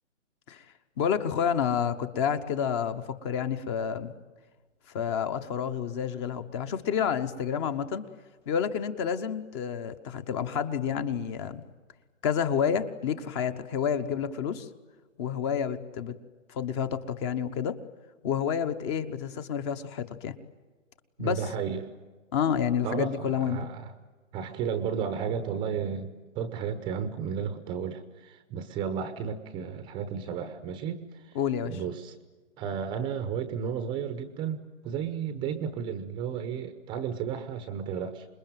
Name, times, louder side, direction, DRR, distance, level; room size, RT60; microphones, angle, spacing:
voice 1, 1.0-4.1 4.9-8.0 8.5-11.6 12.2-14.7 15.2-16.1 16.5-17.8 18.2-20.3 21.2-21.4 22.3-23.6 31.3-31.8, left 8 dB, 20° left, 11 dB, 1.0 m, -29 dB
voice 2, 21.2-21.9 22.8-23.9 24.3-31.4 31.6-32.1 32.6-38.3, right 7 dB, 10° right, 10 dB, 0.8 m, -33 dB
27.0 x 21.5 x 9.1 m, 1.3 s
hypercardioid pair, 150°, 39 cm